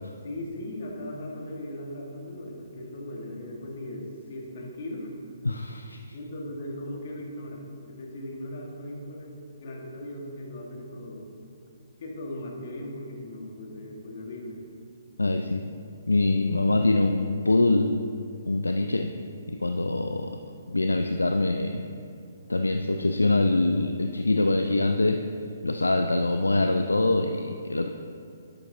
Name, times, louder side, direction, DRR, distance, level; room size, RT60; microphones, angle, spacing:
voice 1, 0.2-5.2 6.1-11.3 12.0-14.6, left 1 dB, 50° left, -1 dB, 1.6 m, -38 dB
voice 2, 5.4-6.0 15.2-15.6 16.1-17.9 18.5-19.1 19.5-20.3 20.7-21.8 22.5-25.2 25.6-27.9, left 2 dB, 80° left, 6 dB, 0.4 m, -24 dB
11.0 x 7.7 x 2.8 m, 2.5 s
figure-of-eight pair, 130°, 0 cm